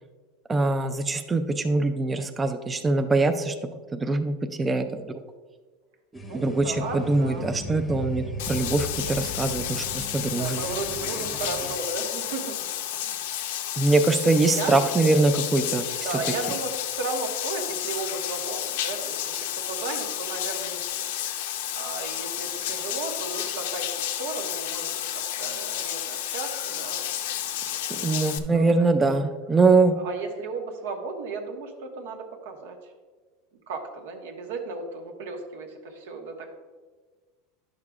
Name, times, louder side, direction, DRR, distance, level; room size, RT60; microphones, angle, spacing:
voice 1, 0.5-3.5 3.9-5.1 6.3-10.6 13.8-15.8 28.0-29.9, right 3 dB, 15° right, 7 dB, 0.3 m, -23 dB
sound 1, 6.1-11.8, left 1 dB, 10° left, 0.8 m, -37 dB
voice 2, 6.2-7.6 10.3-12.7 13.0-13.2 14.5-14.9 16.0-21.1 21.7-28.9 29.5-29.7 29.9-32.9 33.7-36.6, right 3 dB, 85° right, 2 dB, 1.2 m, -35 dB
Bathtub (filling or washing), 8.4-28.4, left 11 dB, 75° left, 0.6 m, -31 dB
10.5 x 6.5 x 2.4 m, 1.4 s
supercardioid pair, 160°, 0 cm